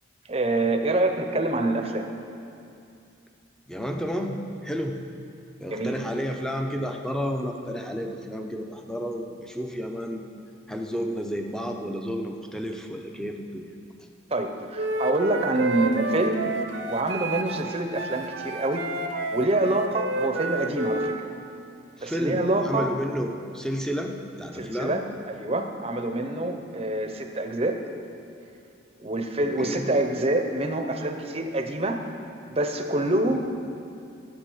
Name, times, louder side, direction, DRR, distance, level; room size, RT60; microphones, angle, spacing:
voice 1, 0.3-2.1 5.7-6.0 14.3-16.4 16.9-18.8 19.3-21.3 22.0-23.0 24.6-27.8 29.0-32.0 32.5-33.4, right 1 dB, 30° right, 5 dB, 0.7 m, -26 dB
voice 2, 3.7-5.0 5.6-10.2 10.7-13.7 22.0-25.0 29.4-29.9, equal, 5° left, 3 dB, 0.6 m, -31 dB
Wind instrument woodwind instrument, 14.7-21.2, right 3 dB, 75° right, 0.8 m, -30 dB
12.0 x 8.1 x 5.5 m, 2.6 s
head